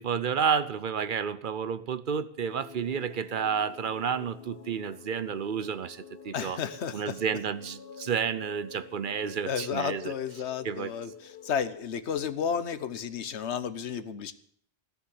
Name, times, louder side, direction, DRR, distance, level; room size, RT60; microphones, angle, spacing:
voice 1, 0.0-6.6 6.9-10.1 10.6-10.9, right 7 dB, 55° right, 14 dB, 0.8 m, -31 dB
sound 1, 2.5-11.7, left 6 dB, 60° left, 0.9 m, -48 dB
voice 2, 6.3-7.2 9.5-14.3, left 7 dB, 85° left, 12 dB, 1.2 m, -32 dB
16.0 x 7.0 x 9.4 m, 0.64 s
omnidirectional pair, 1.1 m